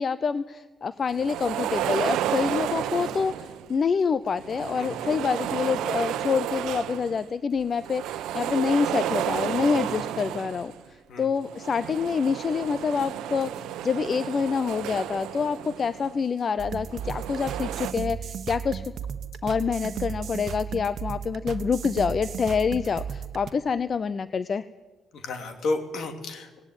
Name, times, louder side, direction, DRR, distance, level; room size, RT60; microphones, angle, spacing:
voice 1, 0.0-10.7 11.2-13.5 13.8-18.8 19.4-24.6, left 5 dB, 45° left, 15 dB, 0.6 m, -26 dB
sound 1, 1.1-3.7 4.3-7.2 7.6-10.8 11.4-16.2 16.8-17.9, right 11 dB, 90° right, 0.9 m, -32 dB
voice 2, 4.8-5.2 9.9-10.0 11.1-11.3 25.1-26.5, left 2 dB, 70° left, 7 dB, 3.0 m, -32 dB
sound 2, 16.6-23.5, right 7 dB, 60° right, 1.2 m, -35 dB
18.5 x 18.0 x 9.8 m, 1.3 s
cardioid pair, 90°, 0 cm